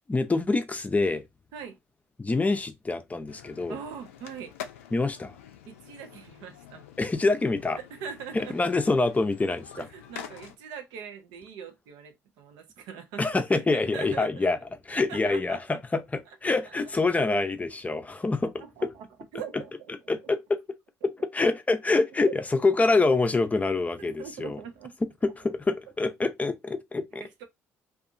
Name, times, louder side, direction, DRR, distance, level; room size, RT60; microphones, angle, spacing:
voice 1, 0.1-1.2 2.2-3.7 4.9-5.3 7.0-7.8 8.3-9.9 13.2-14.6 14.9-18.5 20.1-20.6 21.0-24.6 25.2-27.2, left 3 dB, 20° left, 0.5 m, -26 dB
sound 1, 3.3-10.6, left 9 dB, 90° left, 0.4 m, -46 dB
voice 2, 3.7-4.5 5.7-6.9 7.8-8.6 9.7-14.5 14.9-15.6 16.3-16.4 16.6-16.8 17.1-17.2 17.9-18.0 18.6-19.9 21.0-21.1 22.2-22.4 24.0-25.0 25.2-25.3 27.2-27.4, right 7 dB, 75° right, 0.6 m, -42 dB
2.6 x 2.4 x 2.5 m
hypercardioid pair, 55°, 7 cm